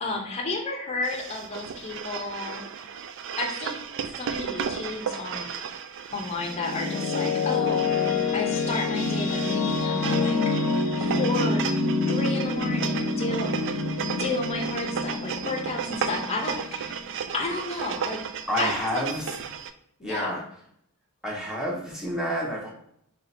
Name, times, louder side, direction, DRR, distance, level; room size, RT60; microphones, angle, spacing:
voice 1, 0.0-2.6 3.4-3.8 4.2-5.5 6.1-8.0 8.3-10.5 11.0-11.6 12.1-13.5 14.2-17.0 17.3-18.2 18.5-19.2 20.0-20.4, left 2 dB, 30° left, 1 dB, 0.6 m, -32 dB
sound 1, 1.0-19.7, right 7 dB, 55° right, 0.3 m, -35 dB
sound 2, 6.1-17.2, left 3 dB, 85° left, 0.6 m, -27 dB
voice 2, 18.5-19.3 20.0-20.4 21.2-22.7, equal, 5° right, -4 dB, 0.9 m, -29 dB
3.4 x 2.7 x 4.2 m, 0.71 s
head